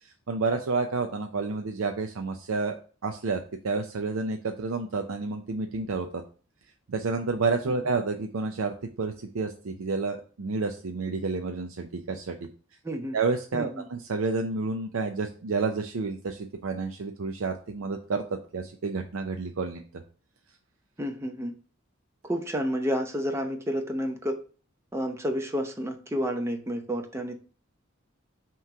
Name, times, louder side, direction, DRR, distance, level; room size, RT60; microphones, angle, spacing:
voice 1, 0.0-2.8 3.0-6.2 6.9-12.4 13.1-18.2 18.5-19.8, right 4 dB, 80° right, 5 dB, 0.5 m, -30 dB
voice 2, 12.8-13.2 13.5-13.9 21.0-21.5 22.2-24.4 24.9-27.4, equal, 15° right, 4 dB, 0.7 m, -30 dB
5.7 x 3.1 x 5.6 m, 0.38 s
head